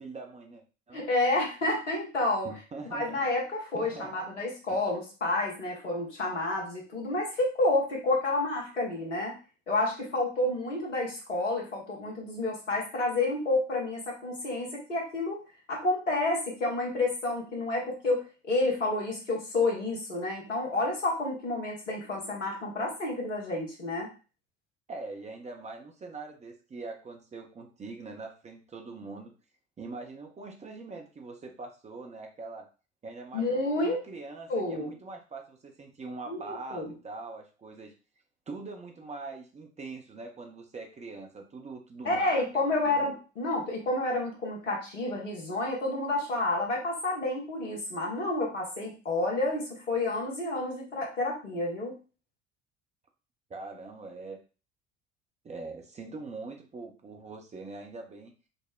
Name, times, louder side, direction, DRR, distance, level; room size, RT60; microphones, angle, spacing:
voice 1, 0.0-1.0 2.4-3.2 3.7-4.1 4.7-4.8 24.9-29.3 29.8-32.7 33.0-37.9 38.5-42.4 42.7-43.1 53.5-54.4 55.4-58.3, right 3 dB, 20° right, 3 dB, 0.6 m, -42 dB
voice 2, 0.9-2.5 2.9-9.3 9.7-15.4 15.7-24.1 33.3-34.0 34.5-34.9 36.3-36.9 42.0-51.9, left 2 dB, 80° left, -3 dB, 1.1 m, -30 dB
5.2 x 2.1 x 2.3 m, 0.34 s
figure-of-eight pair, 60°, 36 cm